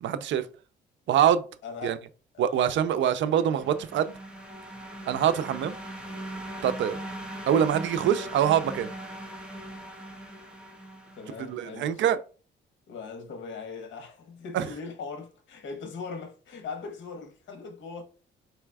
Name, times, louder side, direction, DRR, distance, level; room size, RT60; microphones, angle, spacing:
voice 1, 0.0-0.5 1.1-1.4 1.8-2.0 2.4-4.1 5.1-5.7 6.6-7.0 7.5-8.9 11.5-12.2 14.5-14.6, right 9 dB, 70° right, 0.5 m, -24 dB
voice 2, 1.6-2.0 2.3-2.8 8.0-8.3 11.2-12.0 12.9-18.0, left 4 dB, 70° left, 1.2 m, -40 dB
sound 1, 3.2-11.7, right 1 dB, 5° right, 1.1 m, -40 dB
4.4 x 4.0 x 2.3 m
cardioid pair, 90°, 20 cm